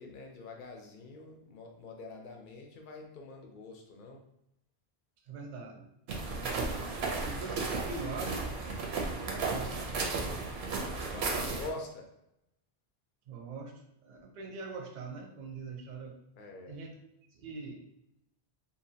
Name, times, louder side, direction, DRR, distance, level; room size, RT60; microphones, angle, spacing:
voice 1, 0.0-4.2 10.6-12.1 16.4-16.8, left 3 dB, 60° left, 2 dB, 0.6 m, -45 dB
voice 2, 5.2-5.9 6.2-6.9 7.2-8.6 9.1-9.9 13.3-13.7 14.0-16.2 16.7-17.0 17.3-17.8, right 4 dB, 55° right, 2 dB, 0.5 m, -43 dB
sound 1, 6.1-11.7, right 3 dB, 85° right, 0.8 m, -34 dB
2.7 x 2.1 x 2.6 m, 0.81 s
omnidirectional pair, 1.0 m